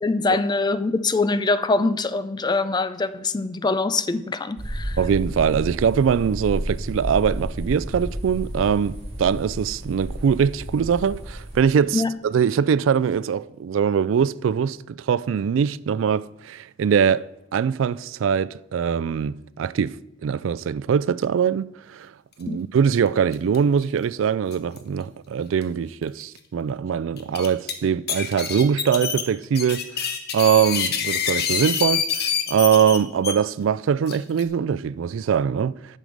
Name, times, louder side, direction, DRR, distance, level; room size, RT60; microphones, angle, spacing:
voice 1, 0.0-5.0 11.9-12.2 22.5-22.6, left 3 dB, 20° left, 0.4 m, -23 dB
sound 1, 4.6-11.6, equal, 30° right, 4.2 m, -32 dB
voice 2, 5.0-17.3 17.5-20.0 20.2-22.1 22.4-30.1 30.3-32.0 32.5-36.0, right 7 dB, 75° right, 0.3 m, -22 dB
sound 2, 23.3-23.6 23.8-23.9 24.5-24.8 25.6-25.7 26.2-26.3 27.2-27.7 28.1-33.3 34.1-34.4, left 7 dB, 55° left, 1.1 m, -26 dB
11.0 x 6.5 x 5.2 m
head